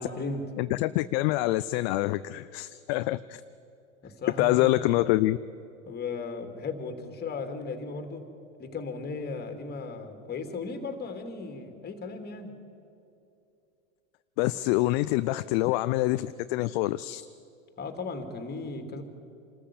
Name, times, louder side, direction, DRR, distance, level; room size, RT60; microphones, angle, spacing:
voice 1, 0.0-0.5 4.0-4.7 5.8-8.3 8.6-12.5 17.8-19.0, left 4 dB, 25° left, 7 dB, 2.6 m, -36 dB
voice 2, 0.6-3.4 4.4-5.4 14.4-17.2, left 17 dB, 45° left, 13 dB, 0.5 m, -26 dB
26.0 x 13.5 x 8.6 m, 2.7 s
hypercardioid pair, 100°, 42 cm